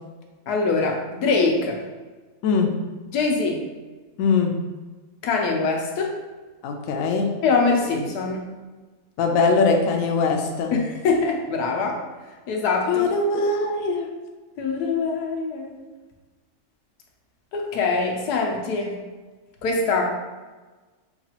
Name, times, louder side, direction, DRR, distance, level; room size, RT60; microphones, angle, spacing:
voice 1, 0.5-1.8 3.1-3.6 5.2-6.2 7.4-8.5 10.7-12.0 12.5-13.1 14.6-15.8 17.5-19.0 19.6-20.0, left 4 dB, 85° left, 1 dB, 1.2 m, -23 dB
voice 2, 4.2-4.5 6.6-7.3 9.2-10.7 12.9-14.1, left 4 dB, 70° left, 2 dB, 0.9 m, -21 dB
5.7 x 2.4 x 2.8 m, 1.3 s
omnidirectional pair, 1.6 m